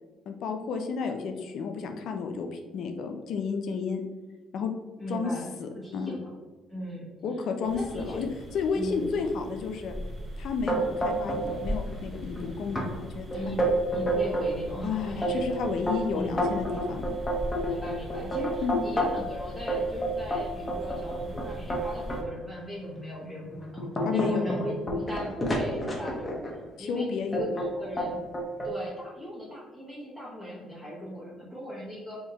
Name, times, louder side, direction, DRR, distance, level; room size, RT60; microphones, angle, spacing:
voice 1, 0.3-4.0 4.5-4.7 5.1-5.3 5.6-6.1 7.2-8.3 8.5-10.0 10.4-13.3 14.8-17.2 18.6-18.8 24.0-24.4 26.8-27.5, left 5 dB, 65° left, 5 dB, 0.4 m, -31 dB
voice 2, 5.0-6.3 6.7-7.1 7.7-8.3 8.7-9.2 13.3-15.4 16.1-16.3 17.6-27.1 27.3-28.2 28.6-32.2, equal, 5° right, -7 dB, 1.3 m, -38 dB
sound 1, 7.6-22.2, equal, 25° right, 0.7 m, -40 dB
sound 2, 10.7-11.6 11.9-12.4 12.8-12.9 13.3-14.5 15.0-19.3 19.7-22.2 22.8-23.0 23.5-26.5 27.3-27.7 28.0-28.7, right 1 dB, 25° left, 0.9 m, -29 dB
3.4 x 2.7 x 2.9 m, 1.3 s
supercardioid pair, 80°, 0 cm